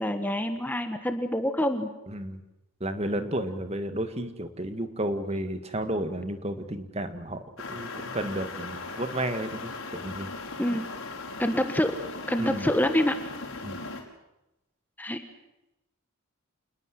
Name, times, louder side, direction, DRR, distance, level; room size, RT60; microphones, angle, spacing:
voice 1, 0.0-1.9 10.6-10.9 11.4-11.9 12.3-13.1 15.0-15.2, left 1 dB, 10° left, 7 dB, 1.5 m, -26 dB
voice 2, 2.1-2.4 2.8-10.3 12.4-12.7 13.6-13.8, right 1 dB, 30° right, 8 dB, 1.9 m, -32 dB
sound 1, 7.6-14.0, left 3 dB, 75° left, 5.3 m, -38 dB
28.0 x 20.5 x 7.8 m, 0.93 s
head